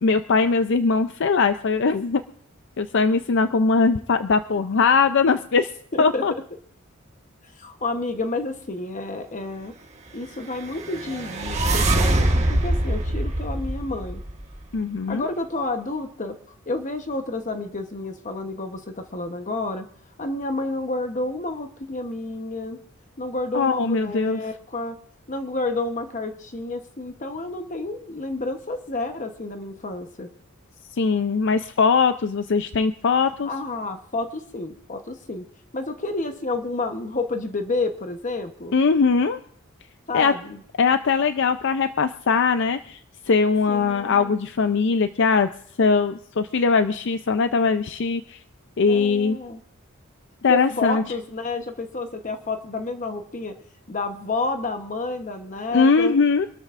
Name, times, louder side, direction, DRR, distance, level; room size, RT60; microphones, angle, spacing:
voice 1, 0.0-2.2 2.8-5.7 6.0-6.3 14.7-15.3 23.5-24.4 30.9-33.5 38.7-39.4 40.1-40.3 40.8-43.0 43.3-45.5 45.8-48.4 48.8-49.4 50.4-51.0 55.7-56.5, left 4 dB, 60° left, 9 dB, 0.5 m, -20 dB
voice 2, 5.9-6.2 7.6-9.7 10.1-14.2 15.1-16.4 16.7-19.9 20.2-22.8 23.2-25.0 25.3-30.3 33.5-35.5 35.7-38.8 40.1-40.6 43.7-44.4 48.9-49.6 50.5-53.5 53.9-56.2, left 2 dB, 35° left, 6 dB, 1.0 m, -30 dB
sound 1, 10.6-14.8, right 1 dB, 35° right, 1.4 m, -24 dB
26.0 x 13.0 x 2.5 m, 0.62 s
head